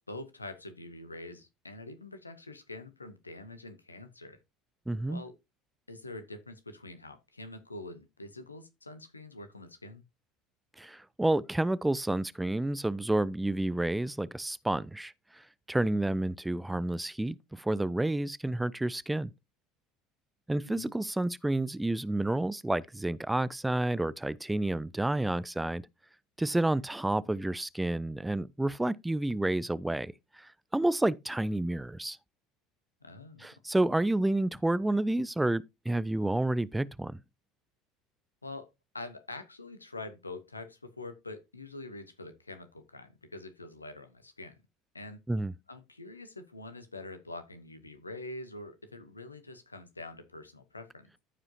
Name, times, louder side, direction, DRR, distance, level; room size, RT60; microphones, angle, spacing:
voice 1, 0.0-4.4 5.1-5.4 5.9-10.0 20.6-20.9 33.0-33.5 38.4-44.6 44.9-45.2 45.7-51.2, left 2 dB, 85° left, 1.0 m, -45 dB
voice 2, 4.9-5.2 10.8-19.3 20.5-25.8 26.4-32.2 33.4-37.2 45.3-45.5, right 1 dB, 5° right, 0.4 m, -30 dB
14.5 x 4.9 x 2.7 m
figure-of-eight pair, 65°, 0 cm